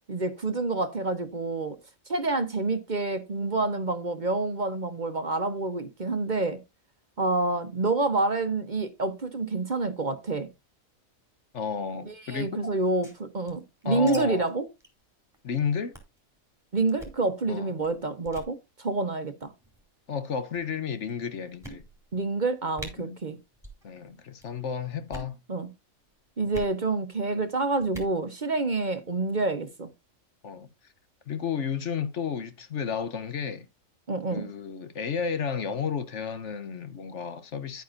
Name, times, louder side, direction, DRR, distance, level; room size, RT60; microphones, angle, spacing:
voice 1, 0.1-1.8 2.1-6.6 7.2-10.5 12.1-14.7 16.7-19.5 22.1-23.4 25.5-25.7 26.4-29.9 34.1-34.5, right 3 dB, 35° right, 1.0 m, -28 dB
voice 2, 11.5-12.7 13.8-14.5 15.4-16.0 17.5-17.7 20.1-21.8 23.0-23.2 23.8-25.4 26.5-26.6 30.4-30.7 31.3-33.7 34.3-37.8, left 6 dB, 60° left, 1.2 m, -32 dB
sound 1, 12.8-14.2 14.4-14.5 14.8-15.0 15.3-15.5 15.9-16.2 16.9-17.2 17.8-18.0 18.3-18.5 19.4-19.8 20.5-20.6 21.1-21.2 21.6-22.2 22.4-22.5 22.8-22.9 23.6-23.8 24.1-24.5 25.0-25.4 26.5-26.7 27.8-28.2, right 1 dB, ahead, 3.8 m, -43 dB
10.5 x 9.3 x 2.6 m
omnidirectional pair, 1.4 m